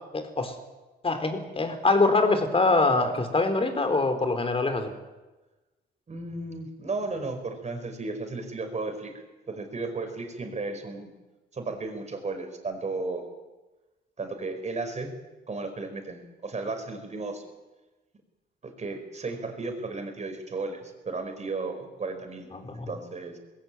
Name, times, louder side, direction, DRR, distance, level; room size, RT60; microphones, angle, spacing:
voice 1, 0.1-0.5 1.0-4.9 22.5-22.9, left 3 dB, 30° left, 7 dB, 4.0 m, -24 dB
voice 2, 6.1-11.1 11.5-13.2 14.2-15.1 15.5-17.4 18.6-23.4, right 3 dB, 35° right, 6 dB, 5.0 m, -34 dB
21.0 x 16.0 x 9.2 m, 1.1 s
cardioid pair, 90°, 20 cm